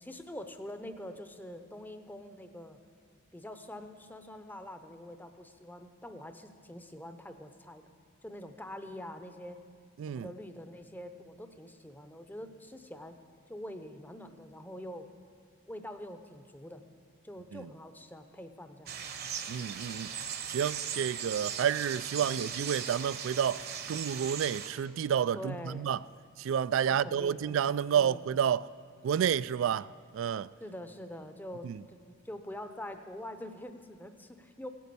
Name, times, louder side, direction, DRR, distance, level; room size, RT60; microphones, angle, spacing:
voice 1, 0.0-2.8 3.3-7.9 8.2-9.6 10.1-13.2 13.5-15.1 15.7-16.8 17.2-18.9 22.1-22.5 25.3-25.9 26.8-27.6 27.9-28.3 30.6-34.7, left 1 dB, 10° left, 0.7 m, -45 dB
sound 1, 18.9-24.7, right 8 dB, 50° right, 1.0 m, -38 dB
voice 2, 19.5-20.1 20.5-23.6 23.9-26.0 26.4-28.7 29.0-29.9 30.1-30.5 31.6-31.8, right 8 dB, 70° right, 0.3 m, -30 dB
16.5 x 9.3 x 6.9 m
head